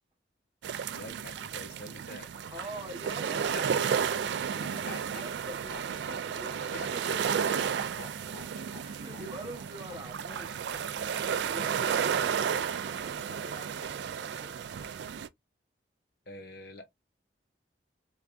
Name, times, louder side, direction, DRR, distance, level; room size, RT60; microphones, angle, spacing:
sound 1, 0.6-15.3, right 7 dB, 70° right, 0.3 m, -32 dB
voice 1, 0.9-2.3 3.5-3.7 4.6-5.2 6.7-7.1 7.5-7.7 8.6-8.7 16.3-16.9, left 2 dB, 55° left, 0.9 m, -45 dB
sound 2, 2.3-13.9, left 4 dB, 35° left, 1.5 m, -53 dB
voice 2, 2.5-3.7 4.4-7.7 8.8-11.0 11.4-14.6, right 1 dB, 25° right, 1.0 m, -46 dB
3.5 x 3.3 x 2.5 m
head